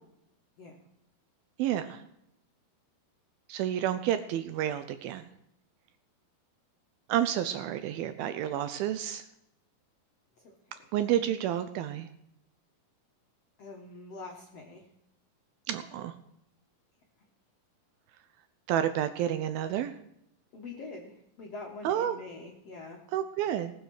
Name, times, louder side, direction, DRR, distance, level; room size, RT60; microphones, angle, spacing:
voice 1, 1.6-2.0 3.5-5.3 7.1-9.2 10.9-12.1 15.7-16.1 18.7-19.9 21.8-22.2 23.1-23.7, right 11 dB, 80° right, 10 dB, 2.2 m, -30 dB
voice 2, 13.6-14.8 20.5-23.0, left 3 dB, 65° left, -1 dB, 1.5 m, -44 dB
18.5 x 6.5 x 6.3 m, 0.81 s
omnidirectional pair, 4.7 m